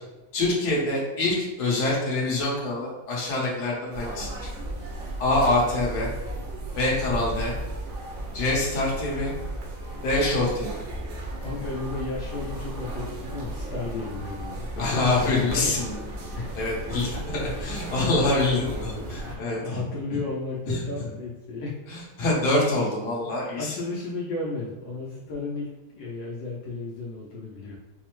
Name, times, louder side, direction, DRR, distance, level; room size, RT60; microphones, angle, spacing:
voice 1, 0.3-4.3 5.2-6.1 6.8-7.5 8.3-9.3 10.0-10.7 14.8-16.0 16.5-18.7 19.1-19.8 20.7-20.8 21.9-23.7, left 2 dB, 65° left, -4 dB, 1.5 m, -25 dB
sound 1, 3.9-19.4, right 1 dB, 85° right, 1.5 m, -35 dB
voice 2, 11.4-15.8 16.3-21.7 23.5-25.7 25.9-27.8, left 3 dB, 80° left, -5 dB, 1.4 m, -34 dB
4.6 x 2.0 x 3.0 m, 1.0 s
omnidirectional pair, 2.0 m